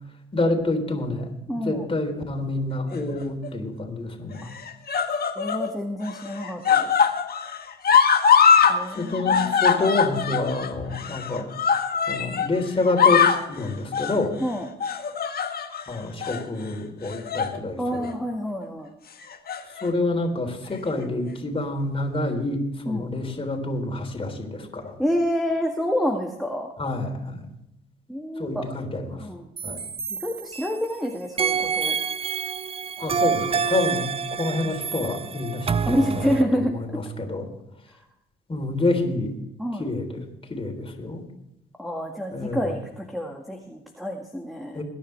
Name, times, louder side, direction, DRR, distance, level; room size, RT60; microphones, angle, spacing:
voice 1, 0.3-4.5 9.0-11.5 12.1-14.4 15.9-18.1 19.8-24.9 26.8-27.5 28.4-29.3 29.6-29.8 33.0-37.5 38.5-39.3 39.8-41.2 42.3-42.7 44.8-44.9, left 2 dB, 25° left, 3 dB, 3.7 m, -28 dB
voice 2, 1.5-1.9 4.4-4.5 5.4-6.9 8.7-9.6 11.4-11.5 14.4-14.7 17.8-18.9 22.9-23.1 25.0-26.7 28.1-28.6 29.2-29.5 30.1-32.0 35.9-36.7 39.6-39.9 41.8-44.8, equal, ahead, 2 dB, 1.9 m, -28 dB
sound 1, 2.9-3.5 4.4-5.7 6.0-8.8 9.0-12.5 12.8-13.5 13.9-14.2 14.8-15.8 16.2-16.4 17.1-17.6 17.9-18.1 19.2-19.9 20.8-20.9, left 6 dB, 50° left, 1.7 m, -22 dB
sound 2, 29.6-30.9 31.4-36.4, right 6 dB, 30° right, 0.5 m, -27 dB
22.0 x 10.5 x 3.4 m, 0.84 s
cardioid pair, 90°, 20 cm